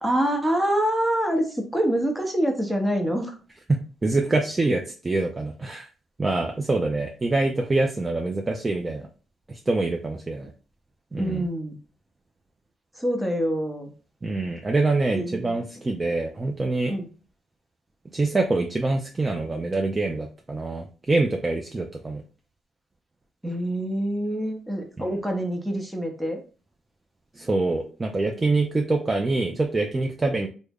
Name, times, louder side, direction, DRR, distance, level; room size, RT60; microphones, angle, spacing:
voice 1, 0.0-3.4 11.1-11.8 13.0-13.9 15.1-15.6 16.9-17.1 23.4-26.4, right 1 dB, 5° right, 3 dB, 0.8 m, -26 dB
voice 2, 4.0-5.9 6.2-9.1 9.5-10.5 11.1-11.5 14.2-16.9 18.1-22.2 25.0-25.1 27.4-30.5, right 2 dB, 25° right, 3 dB, 0.4 m, -25 dB
3.4 x 2.1 x 3.4 m, 0.37 s
cardioid pair, 90°, 0 cm